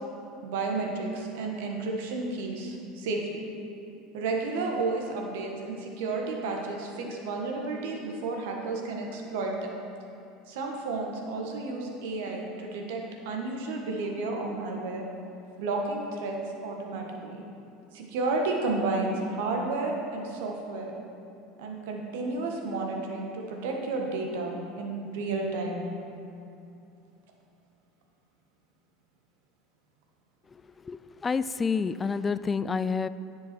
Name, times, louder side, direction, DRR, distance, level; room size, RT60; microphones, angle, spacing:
voice 1, 0.4-3.4 4.1-9.7 10.5-15.1 15.6-17.4 17.9-20.9 21.6-25.8, right 3 dB, 70° right, 1 dB, 1.4 m, -32 dB
voice 2, 30.8-33.1, left 5 dB, 25° left, 15 dB, 0.3 m, -28 dB
9.9 x 7.2 x 4.4 m, 2.6 s
hypercardioid pair, 80°, 0 cm